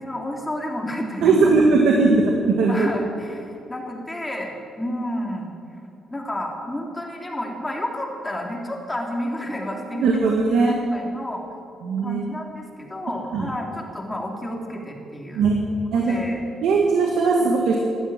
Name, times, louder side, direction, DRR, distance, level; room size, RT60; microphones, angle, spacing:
voice 1, 0.0-1.6 1.9-2.0 2.7-5.5 6.1-10.3 10.7-11.4 12.0-15.5 15.9-16.4 17.4-17.5, left 1 dB, 15° left, 0 dB, 3.1 m, -31 dB
voice 2, 1.2-2.2 2.6-2.9 9.9-10.7 11.8-12.2 13.3-13.5 15.4-15.6 15.9-16.1 16.6-17.8, right 4 dB, 75° right, 0 dB, 1.9 m, -18 dB
12.5 x 12.0 x 9.1 m, 2.6 s
cardioid pair, 90°, 0 cm